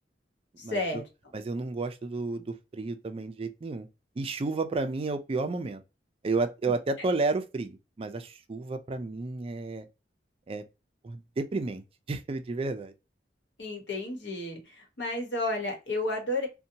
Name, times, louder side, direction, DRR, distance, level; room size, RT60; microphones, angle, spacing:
voice 1, 0.6-1.1 13.6-16.5, left 2 dB, 85° left, 1.0 m, -32 dB
voice 2, 1.3-3.9 4.2-5.8 6.2-9.8 10.5-10.6 11.0-11.8 12.1-12.9, right 3 dB, 35° right, 0.4 m, -31 dB
2.7 x 2.2 x 2.7 m
head